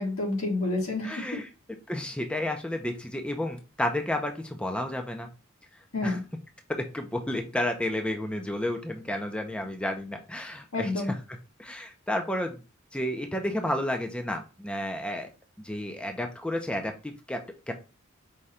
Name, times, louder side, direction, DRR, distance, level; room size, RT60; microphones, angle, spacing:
voice 1, 0.0-1.4 5.9-6.2 10.7-11.1, left 2 dB, 75° left, 1.6 m, -29 dB
voice 2, 1.0-1.5 1.9-5.3 6.0-6.2 6.7-11.2 11.6-12.6 12.9-15.3 15.6-17.7, left 1 dB, 5° left, 0.4 m, -31 dB
4.9 x 2.2 x 4.0 m
head